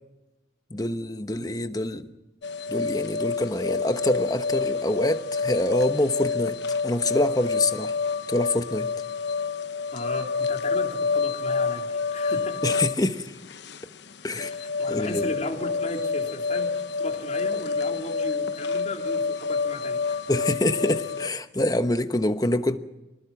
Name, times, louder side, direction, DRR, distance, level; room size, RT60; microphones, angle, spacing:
voice 1, 0.7-2.1 2.7-6.6 6.8-7.9 8.3-8.9 12.6-13.3 14.2-14.5 14.9-15.3 20.3-22.8, left 1 dB, 20° left, 1.1 m, -25 dB
sound 1, 2.4-21.3, left 4 dB, 75° left, 0.8 m, -28 dB
voice 2, 9.9-12.7 14.4-20.2, left 1 dB, 40° left, 3.5 m, -36 dB
25.5 x 19.5 x 6.1 m
head